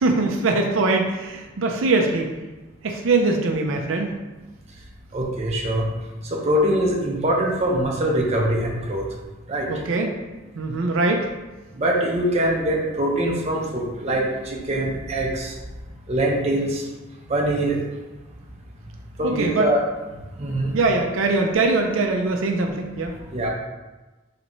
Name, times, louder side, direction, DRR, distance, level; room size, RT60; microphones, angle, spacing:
voice 1, 0.0-2.3 2.8-4.1 9.7-10.1 10.6-11.3 19.2-19.7 20.7-23.1, right 3 dB, 85° right, 2 dB, 0.5 m, -22 dB
voice 2, 5.1-5.9 6.4-9.0 9.5-9.7 11.8-15.5 16.1-16.8 17.3-17.8 19.2-19.8 20.4-20.7 23.3-23.5, right 1 dB, 30° right, -2 dB, 0.7 m, -23 dB
4.0 x 3.3 x 3.0 m, 1.2 s
head